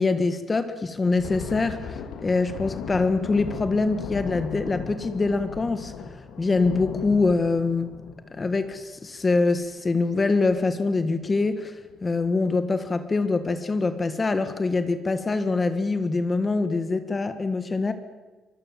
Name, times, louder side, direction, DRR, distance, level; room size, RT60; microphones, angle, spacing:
voice 1, 0.0-5.9 6.4-7.9 8.4-17.9, left 3 dB, 25° left, 10 dB, 1.6 m, -24 dB
Thunder, 1.0-10.0 10.4-10.6 11.0-11.2 11.9-12.3, left 6 dB, 85° left, 2.7 m, -37 dB
24.5 x 21.5 x 7.6 m, 1.3 s
cardioid pair, 105°, 0 cm